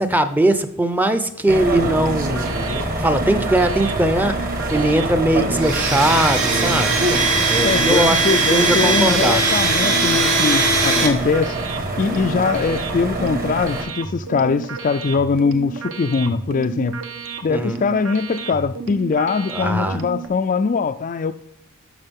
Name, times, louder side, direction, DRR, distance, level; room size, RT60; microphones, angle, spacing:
voice 1, 0.0-2.5 3.0-4.3 4.7-7.0 7.5-8.2 8.5-9.4 17.5-17.8 19.5-20.0, right 1 dB, 10° right, 0.6 m, -20 dB
sound 1, 1.5-13.8, right 1 dB, 40° right, 1.6 m, -26 dB
sound 2, 1.8-20.3, right 5 dB, 60° right, 1.0 m, -33 dB
Domestic sounds home sounds, 5.6-11.1, right 3 dB, 80° right, 2.5 m, -19 dB
voice 2, 7.6-11.6 12.0-17.0 17.4-21.3, left 5 dB, 35° left, 0.4 m, -21 dB
12.0 x 6.7 x 3.6 m
head